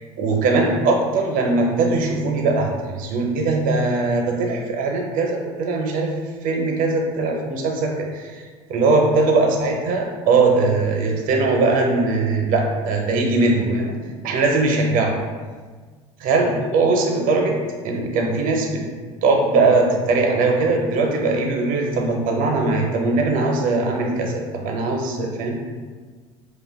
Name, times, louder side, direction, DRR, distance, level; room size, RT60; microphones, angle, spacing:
voice 1, 0.2-6.1 6.4-8.4 8.7-13.9 14.2-15.1 16.2-17.6 17.8-18.8 19.2-25.6, right 3 dB, 55° right, 1 dB, 0.6 m, -20 dB
2.4 x 2.2 x 3.4 m, 1.5 s
hypercardioid pair, 75°, 17 cm